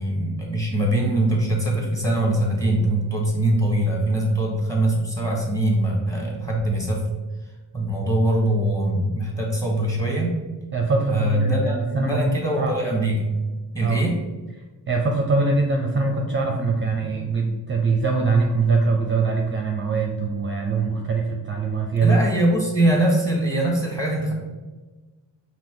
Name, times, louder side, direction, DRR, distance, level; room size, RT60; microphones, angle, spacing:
voice 1, 0.0-7.0 7.7-10.4 11.1-13.3 13.7-14.2 22.0-24.3, right 1 dB, 5° left, -1 dB, 1.2 m, -22 dB
voice 2, 10.7-12.2 12.6-12.8 13.8-14.0 14.9-22.2, right 4 dB, 25° right, 1 dB, 0.5 m, -22 dB
5.1 x 2.8 x 3.7 m, 1.2 s
cardioid pair, 115°, 44 cm